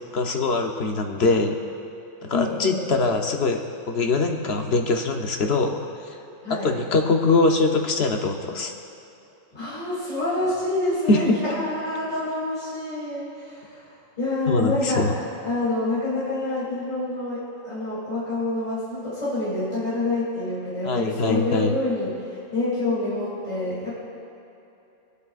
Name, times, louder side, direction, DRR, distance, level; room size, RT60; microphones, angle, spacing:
voice 1, 0.1-1.6 2.2-3.6 3.9-6.2 6.5-8.7 11.1-11.2 14.5-15.1 20.8-21.7, left 3 dB, 55° left, 3 dB, 1.0 m, -23 dB
voice 2, 2.3-2.9 6.4-6.7 9.5-23.9, left 2 dB, 30° left, -11 dB, 3.1 m, -27 dB
23.0 x 8.2 x 2.4 m, 2.9 s
omnidirectional pair, 1.3 m